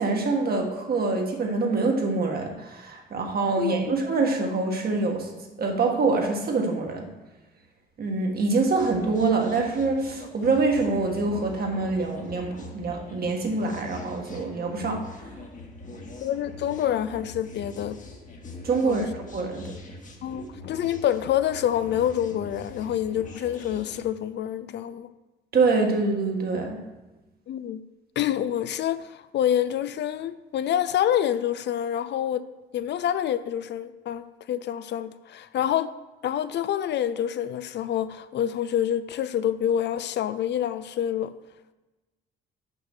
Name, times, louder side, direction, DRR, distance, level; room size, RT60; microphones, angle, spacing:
voice 1, 0.0-5.3 5.6-7.1 8.0-15.0 18.6-19.8 25.5-26.8, right 3 dB, 50° right, 2 dB, 1.6 m, -25 dB
sound 1, 8.8-24.0, left 2 dB, 40° left, 1.3 m, -43 dB
voice 2, 16.2-18.0 18.8-19.0 20.2-25.1 27.5-27.8 28.2-32.5 32.7-35.9 36.2-41.3, left 10 dB, 60° left, 13 dB, 0.4 m, -27 dB
6.2 x 5.7 x 6.4 m, 1.1 s
cardioid pair, 90°, 20 cm